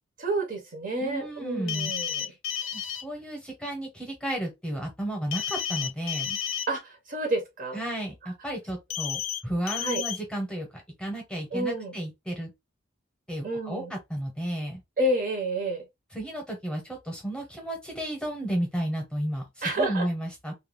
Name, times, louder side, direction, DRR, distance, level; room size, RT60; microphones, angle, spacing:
voice 1, 0.2-2.3 6.7-7.8 9.8-10.0 11.5-12.0 13.4-13.9 15.0-15.9 19.6-20.1, right 1 dB, 40° right, 0.7 m, -29 dB
voice 2, 1.0-1.9 2.7-6.4 7.7-12.5 13.3-14.8 16.1-20.5, right 1 dB, 5° left, 0.9 m, -33 dB
sound 1, 1.7-3.0 5.3-6.7 8.9-9.4 9.7-10.2, left 9 dB, 70° left, 0.5 m, -31 dB
2.4 x 2.2 x 3.2 m
head